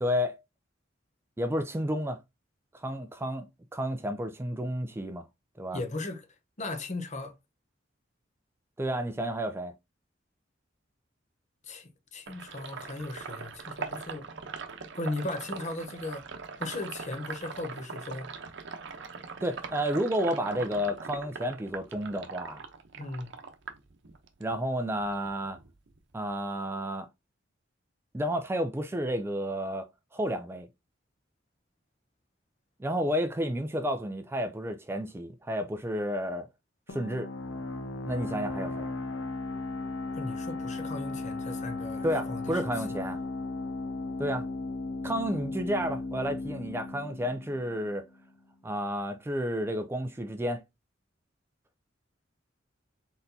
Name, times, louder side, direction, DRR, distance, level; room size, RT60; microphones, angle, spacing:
voice 1, 0.0-0.4 1.4-2.2 2.7-5.2 5.6-5.8 8.8-9.7 19.4-22.6 24.4-25.6 26.1-27.1 28.1-29.9 30.1-30.7 32.8-36.5 36.9-37.3 38.1-38.9 42.0-43.2 44.2-44.4 45.0-48.1 48.6-50.6, equal, 15° right, 0.4 m, -31 dB
voice 2, 5.7-6.2 6.6-7.3 11.6-14.3 14.9-16.3 16.6-18.3 22.9-23.3 40.1-42.6, left 2 dB, 40° left, 0.8 m, -37 dB
Sink (filling or washing), 12.3-24.5 24.9-26.3, right 5 dB, 65° right, 0.8 m, -41 dB
sound 1, 36.9-48.3, left 3 dB, 90° left, 0.8 m, -36 dB
4.2 x 4.0 x 2.7 m
head